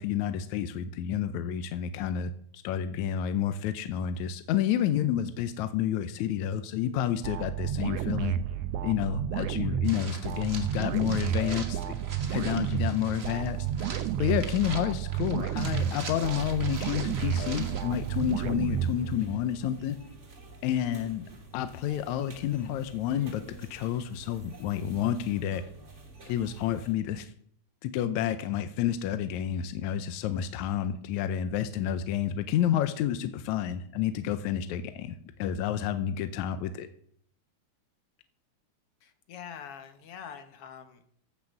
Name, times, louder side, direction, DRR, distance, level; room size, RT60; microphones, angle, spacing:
voice 1, 0.0-8.4 8.8-11.9 12.3-20.0 20.6-21.3 21.5-25.6 26.3-27.3 27.8-36.9, left 10 dB, 75° left, 10 dB, 2.0 m, -30 dB
sound 1, 7.2-19.5, right 10 dB, 70° right, 1.6 m, -31 dB
sound 2, 9.8-18.4, right 3 dB, 45° right, 0.8 m, -43 dB
sound 3, 15.5-26.9, right 2 dB, 30° right, 1.7 m, -50 dB
voice 2, 39.0-41.1, left 8 dB, 60° left, 8 dB, 1.8 m, -45 dB
15.5 x 5.8 x 6.5 m, 0.62 s
omnidirectional pair, 3.4 m